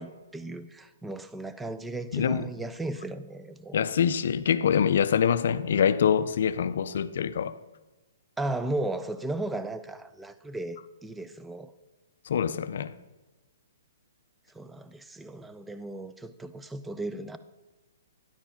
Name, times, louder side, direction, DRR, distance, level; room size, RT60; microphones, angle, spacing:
voice 1, 0.0-3.8 8.4-11.7 14.5-17.4, right 2 dB, 5° right, 0.3 m, -35 dB
voice 2, 2.1-2.5 3.7-7.6 12.3-12.9, left 8 dB, 60° left, 0.4 m, -25 dB
10.0 x 4.6 x 5.7 m
hypercardioid pair, 160°, 0 cm